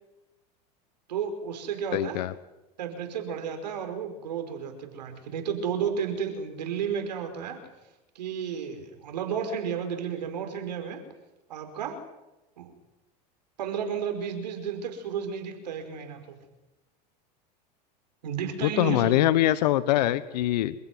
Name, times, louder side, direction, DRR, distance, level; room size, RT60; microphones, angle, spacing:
voice 1, 1.1-2.2 2.8-7.7 8.2-11.0 11.5-12.0 12.6-12.7 13.6-16.4 18.2-19.2, right 7 dB, 85° right, 7 dB, 5.1 m, -32 dB
voice 2, 1.9-2.3 18.6-20.7, left 14 dB, 80° left, 16 dB, 1.1 m, -23 dB
27.0 x 16.0 x 9.5 m, 0.99 s
hypercardioid pair, 100°, 21 cm